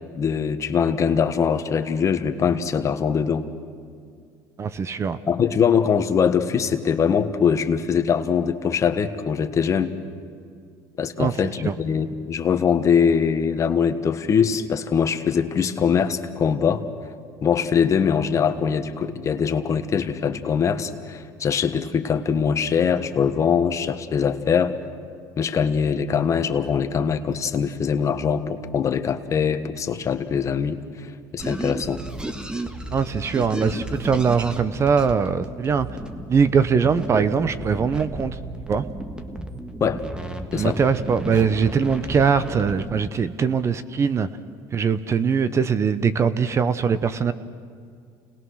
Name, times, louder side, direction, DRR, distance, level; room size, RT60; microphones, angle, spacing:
voice 1, 0.1-3.4 5.3-9.9 11.0-16.8 17.4-24.7 25.4-32.0 39.8-40.0 40.5-40.8, left 7 dB, 40° left, 9 dB, 1.4 m, -22 dB
voice 2, 4.6-5.2 11.2-11.3 11.6-11.7 32.9-35.9 36.3-38.4 38.7-38.8 40.5-44.3 44.7-47.3, right 6 dB, 35° right, 13 dB, 0.9 m, -21 dB
sound 1, 31.4-43.1, right 1 dB, 10° right, 1.6 m, -33 dB
29.5 x 20.0 x 6.4 m, 2.2 s
supercardioid pair, 100°, 8 cm